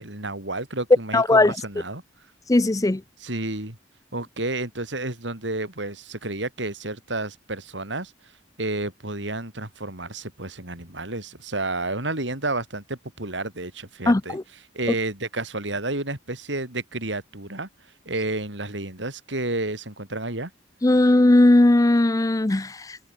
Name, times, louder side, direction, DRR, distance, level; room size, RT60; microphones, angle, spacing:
voice 1, 0.0-2.0 3.2-3.8 4.1-8.1 8.6-14.4 14.7-17.7 18.0-20.5, right 2 dB, 80° right, 6.3 m, -31 dB
voice 2, 1.1-1.5 2.5-3.0 14.1-14.4 20.8-23.0, left 2 dB, 20° left, 0.5 m, -18 dB
head